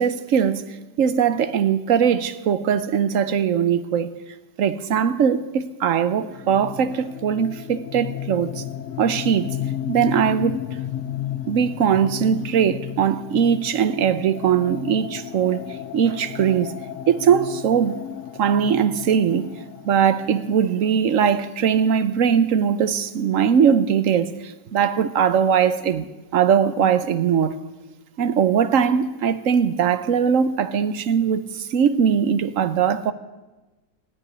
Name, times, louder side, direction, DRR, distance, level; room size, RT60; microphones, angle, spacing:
voice 1, 0.0-4.1 4.6-8.6 9.0-9.6 9.9-10.6 11.5-15.6 15.9-16.7 17.1-18.0 18.4-19.5 19.8-26.1 26.3-27.6 28.2-33.1, right 7 dB, 60° right, 1.0 m, -20 dB
sound 1, 6.1-21.7, left 11 dB, 65° left, 0.8 m, -34 dB
15.0 x 9.9 x 9.5 m
omnidirectional pair, 1.9 m